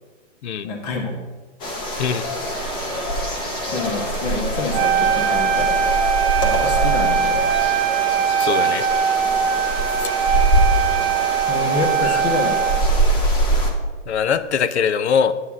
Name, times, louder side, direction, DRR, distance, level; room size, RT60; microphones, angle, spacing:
voice 1, 0.6-1.1 3.6-5.7 6.4-7.4 11.5-12.6, left 3 dB, 35° left, 2 dB, 1.4 m, -27 dB
sound 1, 1.6-13.7, right 1 dB, 15° left, 0.8 m, -23 dB
Wind instrument woodwind instrument, 2.4-12.6, right 10 dB, 35° right, 0.7 m, -39 dB
Wind instrument woodwind instrument 2, 4.7-13.0, right 8 dB, 50° right, 1.1 m, -21 dB
voice 2, 8.4-8.8 10.0-10.1 12.0-12.2 14.1-15.3, left 7 dB, 65° left, 14 dB, 0.7 m, -22 dB
9.3 x 8.4 x 3.6 m, 1.3 s
hypercardioid pair, 155°, 37 cm